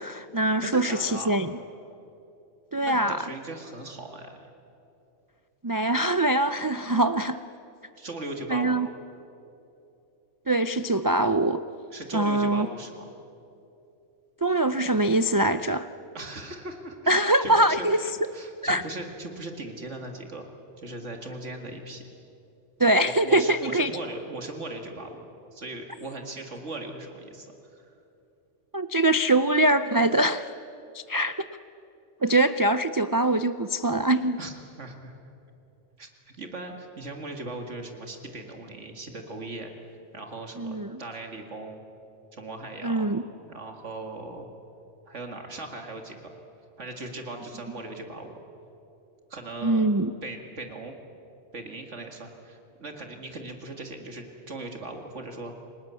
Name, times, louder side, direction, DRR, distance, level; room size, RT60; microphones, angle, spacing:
voice 1, 0.0-1.5 2.7-3.2 5.6-7.4 8.5-8.9 10.5-11.6 12.1-12.7 14.4-15.9 17.1-18.0 18.6-18.8 22.8-23.9 28.7-30.5 30.9-31.4 32.2-34.4 40.6-41.0 42.8-43.2 49.6-50.1, right 1 dB, 30° right, 10 dB, 0.3 m, -23 dB
voice 2, 0.6-1.4 2.8-4.4 8.0-8.8 11.9-13.1 16.1-20.5 20.8-22.0 23.0-25.2 25.5-27.9 32.3-32.4 34.4-35.1 36.0-39.7 40.1-41.8 42.3-43.1 43.4-44.5 45.1-46.3 46.8-48.4 49.3-49.8 50.2-51.0 51.5-55.5, right 2 dB, 70° right, 4 dB, 2.3 m, -38 dB
30.0 x 20.5 x 8.4 m, 2.8 s
omnidirectional pair, 1.3 m